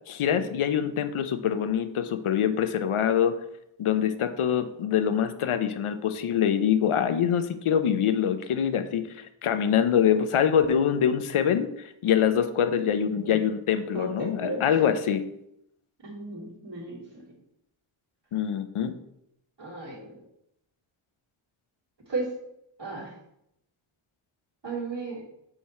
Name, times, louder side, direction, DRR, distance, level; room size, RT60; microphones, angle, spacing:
voice 1, 0.1-3.4 3.8-15.2 18.3-18.9, left 8 dB, 85° left, 10 dB, 0.7 m, -24 dB
voice 2, 12.6-13.4 13.9-14.6 16.0-17.3 19.6-20.2 22.1-22.3 22.8-23.1 24.6-25.2, right 3 dB, 55° right, -5 dB, 2.6 m, -35 dB
5.5 x 4.6 x 4.2 m, 0.78 s
wide cardioid pair, 90°, 49 cm